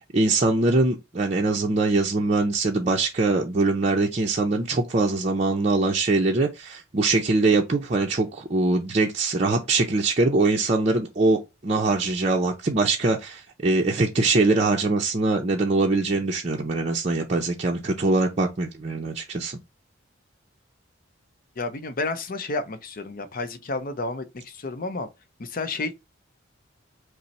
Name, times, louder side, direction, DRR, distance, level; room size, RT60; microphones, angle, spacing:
voice 1, 0.0-19.6, right 3 dB, 35° right, 0.5 m, -23 dB
voice 2, 21.6-25.1 25.4-25.9, left 3 dB, 45° left, 0.6 m, -31 dB
5.5 x 2.1 x 4.1 m
head